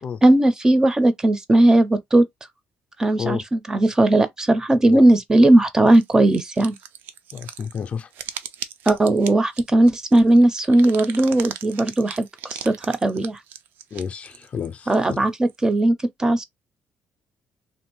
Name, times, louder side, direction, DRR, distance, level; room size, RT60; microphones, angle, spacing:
voice 1, 0.2-2.3 3.0-6.8 8.9-13.4 14.9-16.4, right 1 dB, 20° right, 0.5 m, -17 dB
sound 1, 5.9-15.6, right 9 dB, 85° right, 0.4 m, -38 dB
voice 2, 7.3-8.1 13.9-15.2, left 7 dB, 40° left, 0.4 m, -30 dB
2.8 x 2.6 x 3.1 m
cardioid pair, 125°, 3 cm